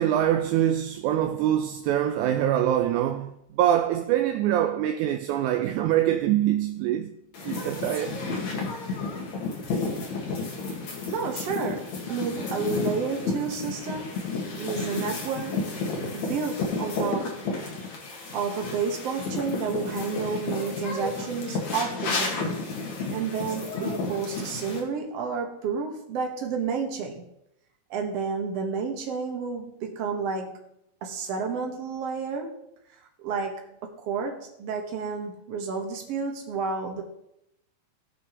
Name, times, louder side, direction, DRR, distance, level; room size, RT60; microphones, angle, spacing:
voice 1, 0.0-7.1 7.4-8.2, right 11 dB, 80° right, 1.8 m, -24 dB
sound 1, 7.3-24.8, left 3 dB, 60° left, 2.8 m, -32 dB
voice 2, 11.1-14.2 14.5-15.6 16.1-17.5 18.3-22.5 23.1-27.3 27.9-30.6 31.0-32.6 33.2-37.0, right 5 dB, 55° right, 2.1 m, -31 dB
17.5 x 6.0 x 3.0 m
omnidirectional pair, 3.9 m